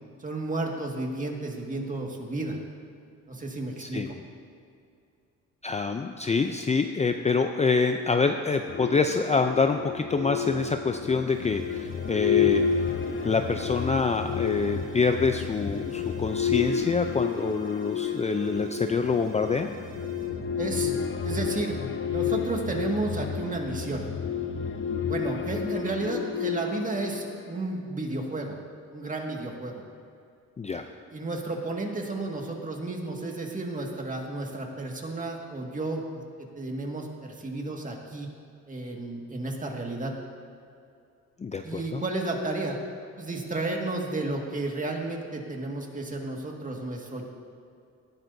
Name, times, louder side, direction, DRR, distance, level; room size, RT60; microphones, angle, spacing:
voice 1, 0.2-2.6 3.3-4.2 20.6-20.9 21.2-21.8 22.1-24.1 25.0-28.6 28.9-29.8 31.1-38.3 38.7-40.1 41.6-42.8 43.2-47.3, right 2 dB, 25° right, 0 dB, 1.9 m, -32 dB
voice 2, 5.6-12.6 13.2-19.7 30.6-30.8 41.4-42.0, left 4 dB, 25° left, 6 dB, 0.5 m, -26 dB
sound 1, 8.7-27.6, left 7 dB, 40° left, 0.9 m, -30 dB
sound 2, 11.3-20.3, right 3 dB, 80° right, 2.7 m, -48 dB
19.0 x 10.5 x 2.7 m, 2.5 s
cardioid pair, 90°, 30 cm